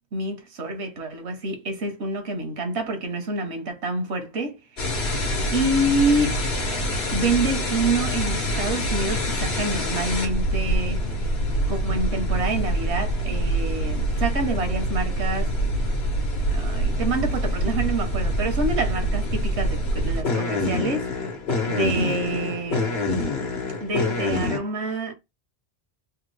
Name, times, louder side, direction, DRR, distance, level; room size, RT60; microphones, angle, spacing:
voice 1, 0.1-5.0 5.5-6.4 7.1-11.0 11.7-15.5 16.5-21.1 21.6-23.0 23.8-25.1, right 2 dB, 85° right, 1.2 m, -27 dB
sound 1, 4.8-24.6, equal, 75° left, 1.3 m, -25 dB
3.5 x 2.2 x 3.2 m
omnidirectional pair, 1.1 m